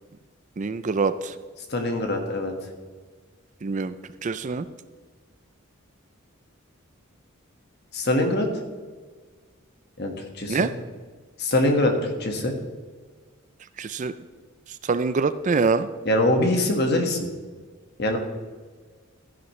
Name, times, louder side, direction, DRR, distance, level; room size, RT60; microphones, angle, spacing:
voice 1, 0.6-1.3 3.6-3.9 4.2-4.7 10.5-10.7 13.8-14.1 14.8-15.9, right 4 dB, 35° right, 13 dB, 0.4 m, -24 dB
voice 2, 1.7-2.5 7.9-8.5 10.0-10.7 11.4-12.5 16.0-17.3 18.0-18.2, left 1 dB, 55° left, 3 dB, 1.7 m, -23 dB
14.0 x 10.5 x 3.2 m, 1.4 s
head